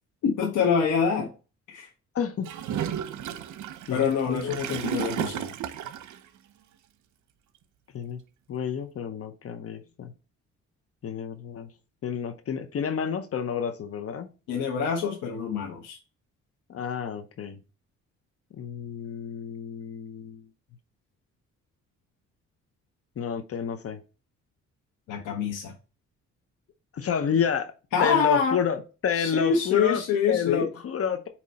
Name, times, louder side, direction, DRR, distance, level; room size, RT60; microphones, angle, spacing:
voice 1, 0.2-1.3 1.7-1.9 3.9-5.5 14.5-16.0 25.1-25.7 27.9-28.6 29.1-30.7, left 6 dB, 80° left, 1.2 m, -25 dB
voice 2, 2.1-2.5 3.9-4.6 7.9-8.2 8.5-10.1 11.0-11.7 12.0-14.3 16.7-17.6 18.5-20.4 23.2-24.0 26.9-27.7 28.0-30.0 30.3-31.3, left 7 dB, 50° left, 0.8 m, -30 dB
Gurgling / Toilet flush, 2.4-6.2, right 9 dB, 75° right, 0.7 m, -33 dB
8.6 x 3.0 x 4.1 m
cardioid pair, 90°, 30 cm